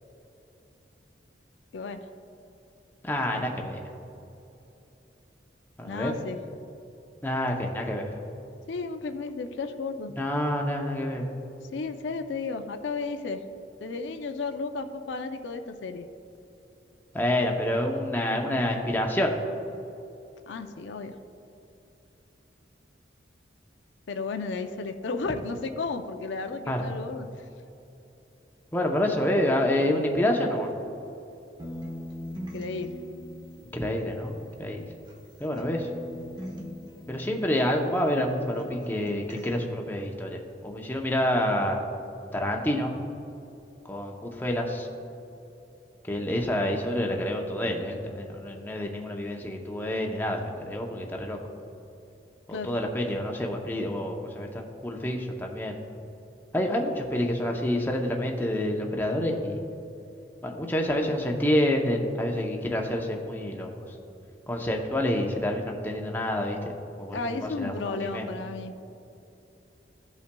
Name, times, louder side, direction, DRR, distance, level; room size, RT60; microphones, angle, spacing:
voice 1, 3.0-3.8 5.8-6.1 7.2-8.0 10.1-11.4 17.1-19.3 26.7-26.8 28.7-30.7 33.7-34.8 35.4-35.9 37.1-41.8 42.3-42.9 43.9-44.9 46.1-51.4 52.5-55.8 56.5-59.6 60.4-63.8 64.5-66.7 67.0-68.2, left 1 dB, 10° left, 1 dB, 0.6 m, -28 dB
voice 2, 5.8-6.4 8.7-10.1 11.7-13.4 13.8-16.1 20.5-21.2 24.1-27.3 32.5-33.0 52.5-52.7 67.1-68.8, left 4 dB, 80° left, 7 dB, 0.4 m, -33 dB
sound 1, 31.6-35.3 35.6-38.3 38.6-39.6, left 1 dB, 25° right, 0.9 m, -41 dB
15.5 x 5.6 x 2.2 m, 2.9 s
head